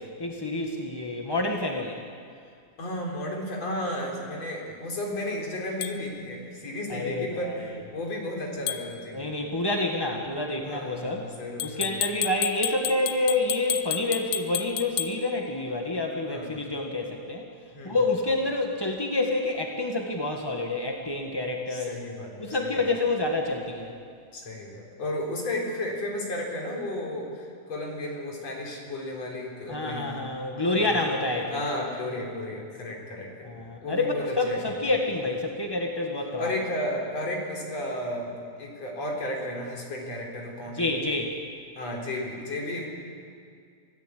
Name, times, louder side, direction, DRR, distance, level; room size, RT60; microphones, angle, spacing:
voice 1, 0.2-2.0 6.9-7.6 9.1-11.2 11.6-17.4 17.8-21.9 22.4-23.9 29.7-31.6 33.4-36.5 40.7-41.3, left 2 dB, 20° left, 1 dB, 0.6 m, -28 dB
voice 2, 2.8-9.3 10.6-12.0 16.3-16.6 17.7-18.0 21.7-22.3 22.6-22.8 24.3-30.3 30.6-31.1 31.5-33.5 33.8-34.8 36.4-40.9 41.7-42.9, left 1 dB, 55° left, -1 dB, 5.0 m, -33 dB
sound 1, 5.8-6.0 8.7-8.9 11.6-15.2, left 12 dB, 80° left, 2.3 m, -31 dB
25.5 x 17.0 x 8.4 m, 2.2 s
omnidirectional pair, 3.5 m